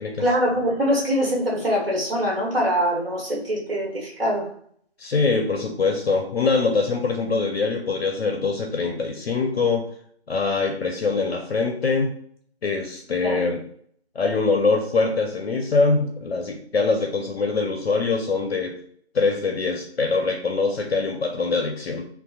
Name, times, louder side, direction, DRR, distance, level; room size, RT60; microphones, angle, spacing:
voice 1, 0.2-4.5 13.2-13.5, equal, 60° right, -3 dB, 1.0 m, -23 dB
voice 2, 5.0-9.9 10.3-12.1 12.6-13.6 14.2-18.8 19.1-22.0, left 4 dB, 70° left, 3 dB, 0.5 m, -23 dB
2.7 x 2.1 x 2.2 m, 0.62 s
figure-of-eight pair, 155°, 32 cm